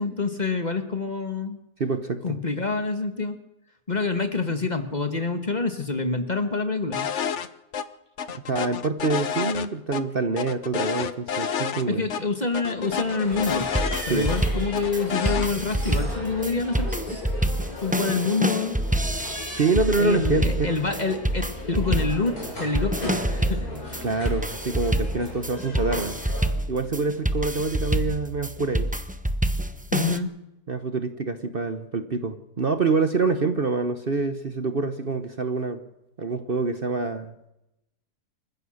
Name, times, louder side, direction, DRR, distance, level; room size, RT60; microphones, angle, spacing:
voice 1, 0.0-1.6 2.2-3.4 3.9-7.1 11.9-13.7 14.1-17.2 17.8-18.8 20.0-21.4 21.7-24.0 29.9-30.3, left 4 dB, 30° left, 8 dB, 1.6 m, -27 dB
voice 2, 1.8-2.4 8.5-12.0 14.1-14.3 19.6-20.7 24.0-26.2 26.7-28.9 30.7-35.8 36.2-37.3, right 3 dB, 40° right, 9 dB, 1.1 m, -26 dB
sound 1, 6.9-7.5 7.7-7.8 8.2-10.0 10.4-11.8 12.1-12.2 12.5-14.4 14.7-15.5, left 7 dB, 55° left, 1.2 m, -29 dB
sound 2, 12.8-26.5, left 1 dB, 75° left, 6.4 m, -37 dB
sound 3, 13.3-30.2, right 1 dB, 5° right, 0.7 m, -27 dB
27.0 x 15.5 x 6.5 m, 0.91 s
omnidirectional pair, 1.6 m